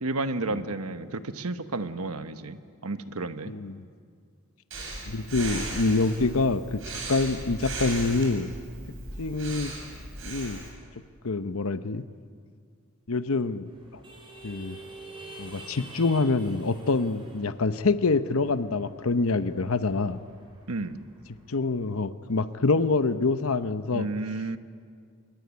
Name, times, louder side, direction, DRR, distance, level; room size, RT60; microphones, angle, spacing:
voice 1, 0.0-3.5 20.7-21.0 23.9-24.6, right 2 dB, 85° right, 10 dB, 1.2 m, -32 dB
voice 2, 3.5-3.8 5.1-6.8 7.1-8.5 9.2-9.7 10.2-10.6 11.2-12.0 13.1-13.7 14.4-14.8 15.4-20.2 21.5-24.1, left 3 dB, 75° left, 12 dB, 0.9 m, -26 dB
Breathing, 4.7-10.7, right 2 dB, 60° right, 8.0 m, -37 dB
sound 1, 13.7-21.5, right 2 dB, 25° right, 5.4 m, -48 dB
26.5 x 22.5 x 9.6 m, 2.1 s
head